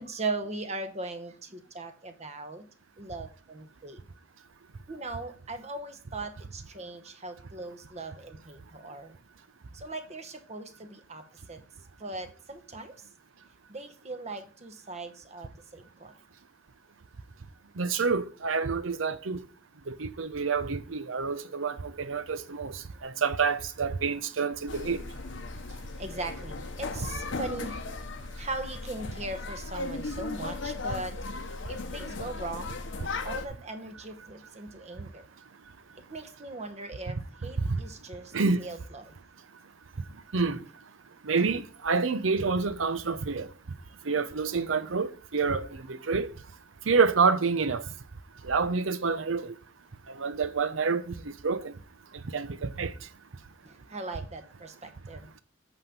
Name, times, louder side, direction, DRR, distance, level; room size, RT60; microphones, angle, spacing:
voice 1, 0.0-2.7 3.0-4.0 4.9-9.2 9.7-13.1 13.7-16.1 22.9-23.0 25.4-31.2 31.7-32.8 33.2-35.3 36.1-39.1 53.6-55.4, right 2 dB, 35° right, 1.0 m, -39 dB
voice 2, 17.8-19.4 19.9-21.7 22.1-22.7 23.0-25.0 38.3-38.6 40.3-40.6 41.3-43.5 44.1-45.6 46.1-46.3 46.9-47.8 48.5-49.5 50.2-51.1 51.4-51.7 52.3-52.9, right 4 dB, 85° right, 0.7 m, -27 dB
sound 1, 24.7-33.4, left 3 dB, 70° left, 0.8 m, -37 dB
8.2 x 3.8 x 6.7 m
head